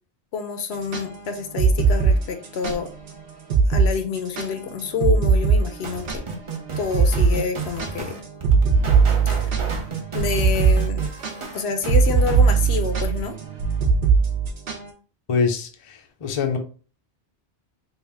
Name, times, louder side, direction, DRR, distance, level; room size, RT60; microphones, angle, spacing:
voice 1, 0.3-2.9 3.7-6.2 6.8-8.2 9.3-9.6 10.1-11.1 11.5-13.4, left 5 dB, 75° left, 8 dB, 0.8 m, -28 dB
sound 1, 0.7-2.8 3.1-3.2 3.5-3.9 4.2-6.5 6.9-7.3 7.6-14.9, right 5 dB, 65° right, 0.9 m, -19 dB
sound 2, 5.8-12.5, right 5 dB, 40° right, 0.5 m, -33 dB
voice 2, 15.3-16.6, left 5 dB, 45° left, 5 dB, 0.5 m, -24 dB
3.4 x 2.3 x 3.3 m, 0.37 s
omnidirectional pair, 1.1 m